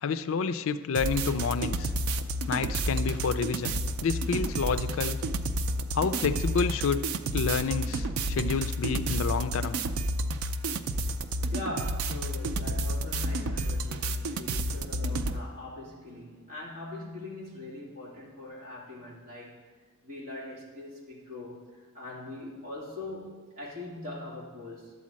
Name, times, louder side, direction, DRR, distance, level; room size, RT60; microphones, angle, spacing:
voice 1, 0.0-1.9 2.5-5.2 5.9-7.1 7.3-9.8, left 5 dB, 65° left, 12 dB, 0.4 m, -29 dB
sound 1, 0.9-15.4, right 1 dB, 90° right, 0.5 m, -30 dB
voice 2, 11.5-19.7 20.0-24.9, left 2 dB, 40° right, -6 dB, 2.8 m, -41 dB
11.5 x 4.2 x 7.5 m, 1.4 s
head